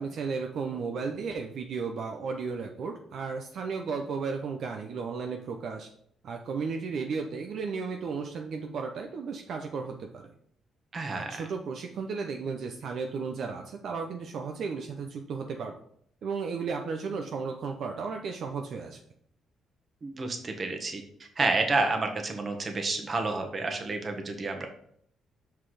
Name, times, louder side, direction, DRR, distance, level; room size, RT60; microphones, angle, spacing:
voice 1, 0.0-5.9 6.2-10.3 11.1-15.7 16.2-19.0, right 5 dB, 65° right, 3 dB, 0.7 m, -34 dB
voice 2, 10.9-11.4 20.0-24.7, right 3 dB, 35° right, 4 dB, 1.4 m, -30 dB
5.9 x 4.6 x 4.8 m, 0.67 s
cardioid pair, 90°, 0 cm